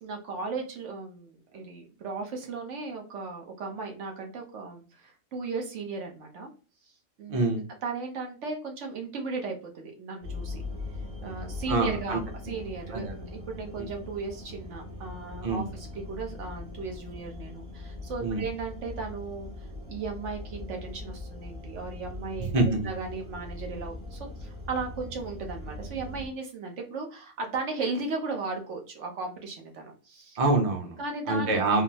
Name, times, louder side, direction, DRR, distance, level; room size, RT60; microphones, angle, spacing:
voice 1, 0.0-6.5 7.2-7.4 7.8-10.6 11.2-19.5 19.9-22.5 22.8-30.4 31.0-31.7, right 4 dB, 80° right, 2 dB, 1.1 m, -36 dB
voice 2, 7.3-7.6 11.7-12.5 12.9-13.2 13.8-13.9 15.4-15.7 18.2-18.4 22.4-22.9 30.4-31.0 31.3-31.8, right 2 dB, 35° right, 2 dB, 0.7 m, -26 dB
sound 1, 10.2-26.3, left 2 dB, 55° right, 1.1 m, -40 dB
3.7 x 2.0 x 2.7 m, 0.35 s
omnidirectional pair, 1.2 m